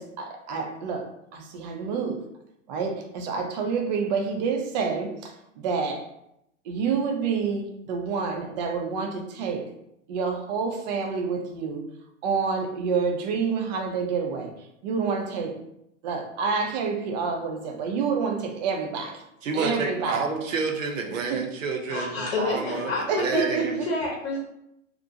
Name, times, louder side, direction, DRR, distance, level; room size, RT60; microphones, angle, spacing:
voice 1, 0.0-2.2 2.7-6.1 6.7-9.7 10.1-11.8 12.2-14.5 14.8-15.6 16.0-19.2 19.5-20.2 21.3-21.5 23.1-23.9, right 5 dB, 35° right, 4 dB, 0.4 m, -28 dB
voice 2, 19.4-23.7, right 4 dB, 75° right, 2 dB, 0.7 m, -29 dB
voice 3, 21.9-24.4, left 3 dB, 50° left, -3 dB, 0.8 m, -29 dB
2.5 x 2.1 x 2.6 m, 0.80 s
hypercardioid pair, 110°, 39 cm